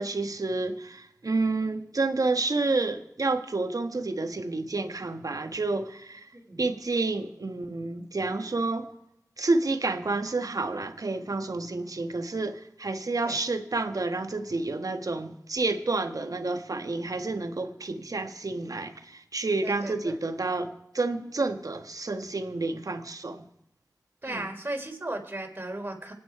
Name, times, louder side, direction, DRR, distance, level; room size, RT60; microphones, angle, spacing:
voice 1, 0.0-6.3 6.6-8.9 9.4-23.4 24.3-24.5, right 3 dB, 70° right, 1.4 m, -29 dB
voice 2, 19.6-20.2 24.2-26.1, right 1 dB, 30° right, 3.8 m, -35 dB
26.0 x 9.3 x 4.7 m
wide cardioid pair, 50°, 6 cm